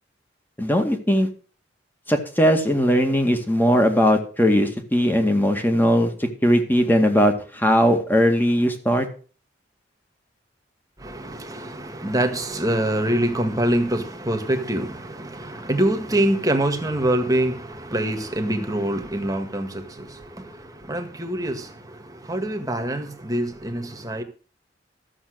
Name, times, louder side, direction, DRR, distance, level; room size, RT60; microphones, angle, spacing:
voice 1, 0.6-1.3 2.1-9.1, equal, 10° left, 2.1 m, -19 dB
voice 2, 11.0-24.2, right 1 dB, 20° right, 1.8 m, -25 dB
13.5 x 7.4 x 6.5 m
head